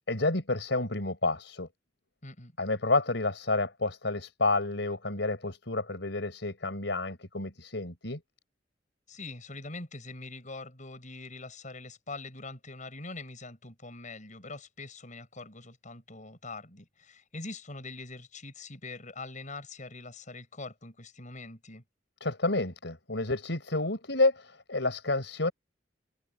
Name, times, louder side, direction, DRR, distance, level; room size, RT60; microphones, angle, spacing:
voice 1, 0.1-1.7 2.6-8.2 22.2-25.5, left 2 dB, 75° left, 5.2 m, -29 dB
voice 2, 2.2-2.5 9.1-21.8, left 3 dB, 45° left, 7.5 m, -43 dB
head